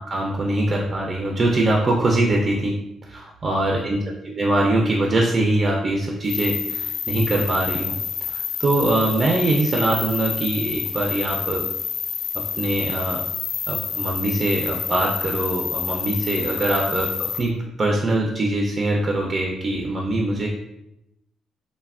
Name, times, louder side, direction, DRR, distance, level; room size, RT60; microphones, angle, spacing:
voice 1, 0.1-2.8 3.1-4.0 4.2-7.9 8.2-11.7 12.3-13.2 13.7-20.5, right 2 dB, 35° right, 0 dB, 0.4 m, -23 dB
sound 1, 6.3-17.4, left 7 dB, 60° left, 0.4 m, -28 dB
3.1 x 2.1 x 2.3 m, 0.85 s
cardioid pair, 90°, 0 cm